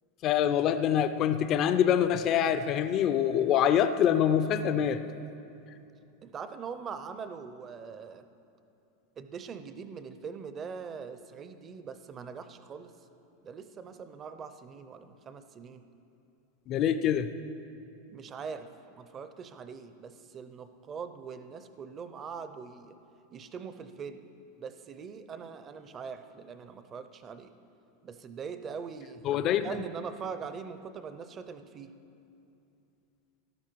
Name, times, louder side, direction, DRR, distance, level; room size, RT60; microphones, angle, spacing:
voice 1, 0.2-5.0 16.7-17.3 29.2-29.7, left 9 dB, 30° left, 11 dB, 0.4 m, -25 dB
voice 2, 6.2-8.2 9.2-12.9 13.4-15.8 18.1-23.0 23.3-24.3 24.6-27.5 28.0-32.0, right 6 dB, 20° right, 10 dB, 0.5 m, -42 dB
13.0 x 11.5 x 4.6 m, 2.7 s
supercardioid pair, 160°, 0 cm